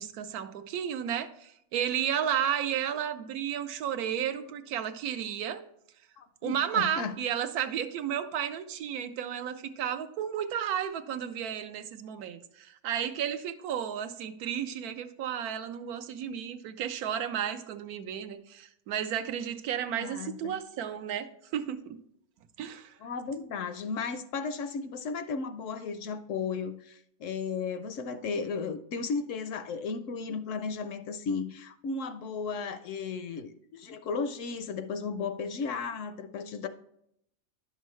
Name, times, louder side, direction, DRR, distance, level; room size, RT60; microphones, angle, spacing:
voice 1, 0.0-5.6 6.4-22.0 22.6-22.9, right 9 dB, 85° right, 9 dB, 1.2 m, -33 dB
voice 2, 6.2-7.1 19.9-20.6 23.0-36.7, left 5 dB, 70° left, 10 dB, 0.8 m, -35 dB
11.0 x 6.5 x 3.1 m, 0.74 s
omnidirectional pair, 1.6 m